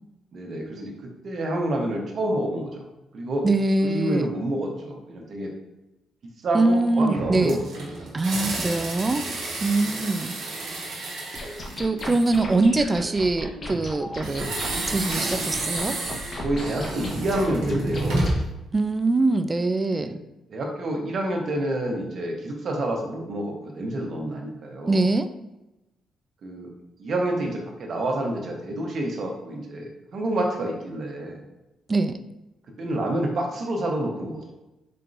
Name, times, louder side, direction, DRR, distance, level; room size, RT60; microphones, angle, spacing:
voice 1, 0.3-2.8 3.1-3.5 3.8-5.5 6.4-8.4 9.8-10.0 16.4-18.3 19.9-20.1 20.5-25.1 26.4-26.7 27.0-31.4 32.8-34.5, right 1 dB, 55° right, 1 dB, 1.0 m, -28 dB
voice 2, 3.4-4.3 6.5-7.6 8.1-9.2 9.6-10.3 11.8-16.0 18.7-20.2 24.9-25.3 31.9-32.2, right 2 dB, 25° right, 10 dB, 0.3 m, -23 dB
sound 1, 7.1-12.5 14.2-18.6, right 2 dB, 85° right, 1.0 m, -30 dB
sound 2, 11.4-18.4, left 1 dB, 45° left, 1.1 m, -36 dB
4.3 x 3.7 x 2.6 m, 0.97 s
cardioid pair, 90°, 0 cm